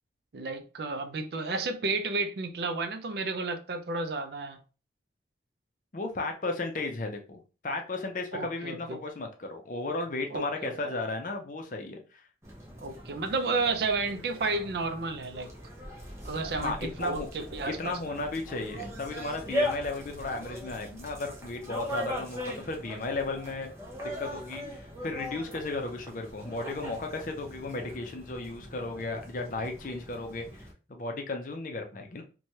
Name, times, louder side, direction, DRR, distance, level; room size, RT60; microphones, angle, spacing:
voice 1, 0.3-4.6 8.3-9.0 10.3-10.7 12.8-15.5 16.2-18.0, right 3 dB, 60° right, 0.4 m, -32 dB
voice 2, 5.9-12.0 16.6-17.3 17.8-23.7 24.2-32.2, left 2 dB, 45° left, 0.5 m, -35 dB
sound 1, 12.4-30.7, left 1 dB, 15° right, 0.6 m, -40 dB
3.1 x 2.2 x 2.7 m
head